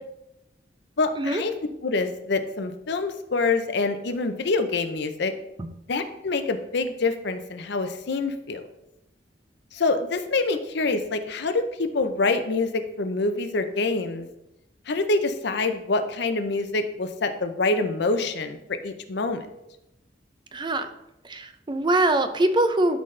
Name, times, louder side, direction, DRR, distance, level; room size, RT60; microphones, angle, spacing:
voice 1, 1.0-1.5 1.8-5.3 5.9-8.6 9.7-14.3 14.9-18.6 18.8-19.5, left 3 dB, 65° left, 8 dB, 0.7 m, -26 dB
voice 2, 20.5-20.9 21.3-23.0, right 2 dB, 25° right, 9 dB, 0.5 m, -23 dB
12.0 x 4.1 x 3.3 m, 0.88 s
head